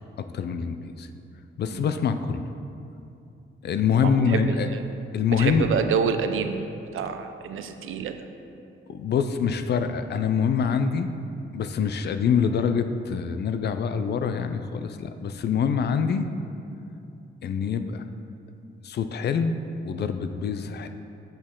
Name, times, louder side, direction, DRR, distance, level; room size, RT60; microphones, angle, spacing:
voice 1, 0.2-1.1 1.6-2.4 3.6-4.7 5.1-5.7 8.9-11.1 11.5-16.3 17.4-18.0 18.8-19.6 19.8-20.9, left 6 dB, 55° left, 9 dB, 0.4 m, -25 dB
voice 2, 3.9-4.8 5.4-6.6 6.9-8.2, right 6 dB, 80° right, 8 dB, 0.5 m, -28 dB
8.2 x 6.4 x 3.7 m, 2.6 s
wide cardioid pair, 165°, 21 cm